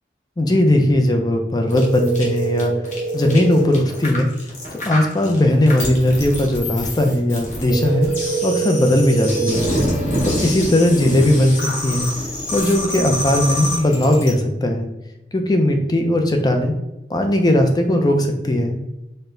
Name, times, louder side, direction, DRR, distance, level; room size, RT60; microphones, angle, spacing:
voice 1, 0.4-2.7 3.1-4.3 4.7-8.1 8.4-9.7 10.2-12.1 12.5-14.9 15.3-16.7 17.1-18.8, left 1 dB, 25° left, 4 dB, 0.5 m, -18 dB
sound 1, 1.7-14.3, left 1 dB, 45° left, 1.1 m, -26 dB
sound 2, 1.7-3.7 7.7-9.7, right 4 dB, 80° right, 0.9 m, -24 dB
4.3 x 2.1 x 3.7 m, 0.96 s
head